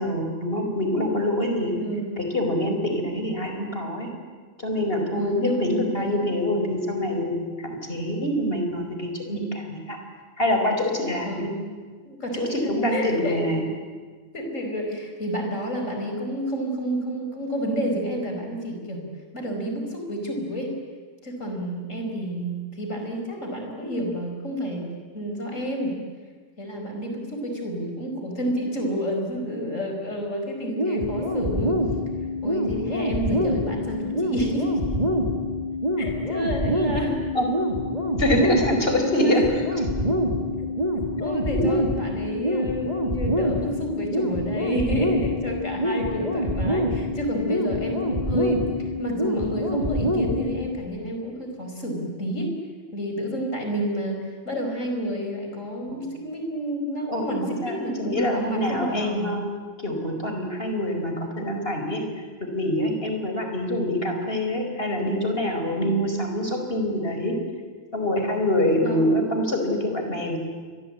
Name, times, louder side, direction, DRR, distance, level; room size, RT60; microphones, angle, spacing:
voice 1, 0.0-1.8 2.2-4.1 4.6-10.0 10.4-11.5 12.4-13.6 37.3-37.4 38.1-39.4 40.1-40.2 55.9-56.0 57.1-59.4 59.8-62.0 62.5-67.3 67.9-70.4, left 1 dB, 50° left, 4 dB, 4.9 m, -25 dB
voice 2, 1.7-2.3 5.1-6.3 9.3-9.6 11.2-11.7 12.1-13.5 14.3-19.0 19.3-20.7 21.2-24.9 25.1-26.0 26.6-31.8 32.4-35.0 36.0-37.2 39.1-39.5 41.2-52.5 52.9-59.3 68.8-69.2, equal, 85° left, 3 dB, 5.4 m, -30 dB
sound 1, 30.8-50.8, left 1 dB, 30° right, 3.0 m, -26 dB
28.5 x 23.5 x 8.7 m, 1.5 s
omnidirectional pair, 1.3 m